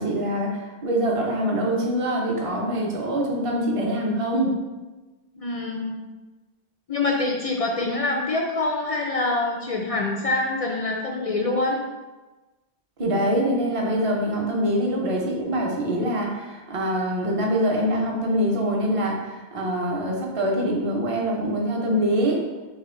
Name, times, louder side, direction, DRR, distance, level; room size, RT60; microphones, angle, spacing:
voice 1, 0.0-4.5 13.0-22.4, equal, 35° right, -1 dB, 0.8 m, -24 dB
voice 2, 5.3-5.9 6.9-11.8, left 2 dB, 55° left, 0 dB, 0.4 m, -25 dB
4.2 x 3.4 x 3.8 m, 1.2 s
omnidirectional pair, 1.1 m